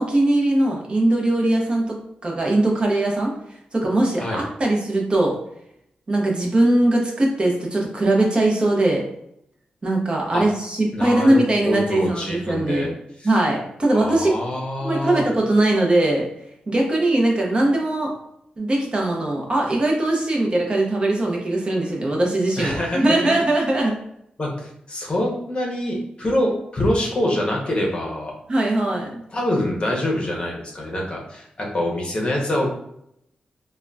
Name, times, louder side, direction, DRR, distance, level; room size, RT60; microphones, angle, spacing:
voice 1, 0.0-2.0 2.2-3.3 3.7-5.4 6.1-9.0 9.8-12.9 13.2-14.4 14.8-16.3 16.7-18.1 18.6-23.9 28.5-29.2, right 1 dB, 35° right, -1 dB, 0.7 m, -20 dB
voice 2, 10.9-12.9 13.2-13.4 13.9-15.2 22.6-23.2 24.4-28.3 29.3-32.7, left 1 dB, 35° left, -1 dB, 0.7 m, -25 dB
3.7 x 2.2 x 2.2 m, 0.75 s
wide cardioid pair, 105°, 3 cm